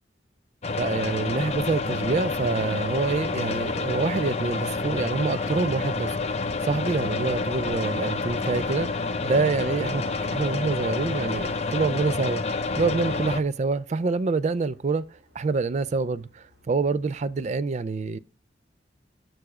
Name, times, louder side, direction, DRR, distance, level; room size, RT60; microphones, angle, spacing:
sound 1, 0.6-13.4, left 3 dB, 40° left, 0.7 m, -28 dB
voice 1, 0.8-10.0 10.3-12.4 12.8-15.0 15.4-18.2, right 4 dB, 40° right, 0.4 m, -26 dB
sound 2, 8.5-17.5, right 1 dB, 75° right, 2.3 m, -50 dB
6.8 x 6.2 x 4.8 m
head